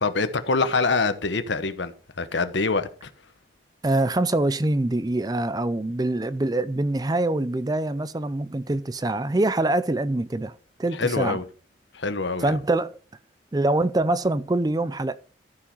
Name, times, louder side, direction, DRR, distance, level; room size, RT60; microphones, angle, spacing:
voice 1, 0.0-3.1 11.0-11.4 11.9-12.5, left 3 dB, 75° left, 1.1 m, -25 dB
voice 2, 3.8-10.5 10.8-11.4 12.4-13.0 13.5-15.2, right 2 dB, 20° right, 0.4 m, -24 dB
14.0 x 5.1 x 5.4 m
head